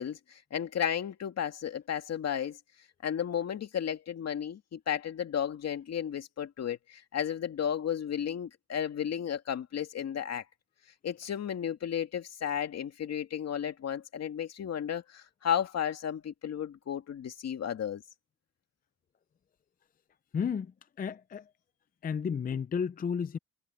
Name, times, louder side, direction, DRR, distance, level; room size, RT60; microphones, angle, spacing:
voice 1, 0.0-2.6 3.0-10.4 11.0-18.0, left 9 dB, 55° left, 2.4 m, -33 dB
voice 2, 20.3-20.7 21.0-21.4 22.0-23.4, left 6 dB, 30° left, 0.5 m, -32 dB
cardioid pair, 90°, 30 cm